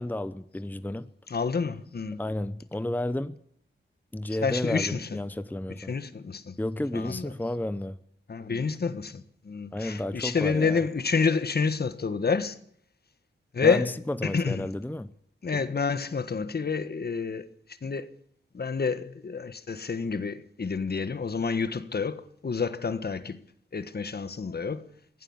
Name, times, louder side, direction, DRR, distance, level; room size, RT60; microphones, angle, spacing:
voice 1, 0.0-1.1 2.2-3.4 4.1-6.0 6.6-8.0 9.7-10.8 13.6-15.1, left 1 dB, 10° left, 0.8 m, -32 dB
voice 2, 1.3-2.2 4.4-5.1 5.8-6.6 6.9-7.3 8.3-12.6 13.5-14.0 14.2-14.7 15.4-17.5 17.8-18.1 18.5-23.4 23.7-24.9, left 5 dB, 50° left, 1.4 m, -28 dB
23.0 x 16.5 x 7.3 m
wide cardioid pair, 75°, 20 cm